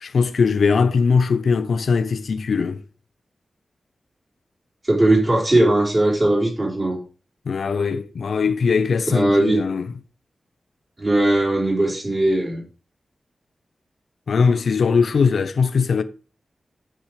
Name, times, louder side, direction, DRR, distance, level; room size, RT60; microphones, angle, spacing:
voice 1, 0.0-2.8 7.5-9.9 14.3-16.0, left 5 dB, 70° left, 0.8 m, -20 dB
voice 2, 4.8-7.0 9.1-9.6 11.0-12.6, right 1 dB, 25° right, 4.0 m, -19 dB
7.5 x 7.4 x 4.9 m
wide cardioid pair, 180°, 0 cm